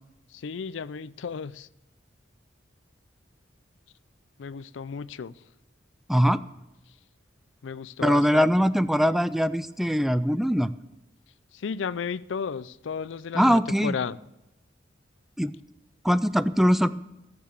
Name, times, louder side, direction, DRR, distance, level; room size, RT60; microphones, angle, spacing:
voice 1, 0.3-1.7 4.4-5.4 7.6-8.4 11.5-14.2, left 6 dB, 70° left, 0.4 m, -33 dB
voice 2, 6.1-6.4 8.0-10.7 13.3-14.0 15.4-15.6 16.0-16.9, equal, ahead, 0.3 m, -22 dB
15.0 x 6.8 x 6.7 m
head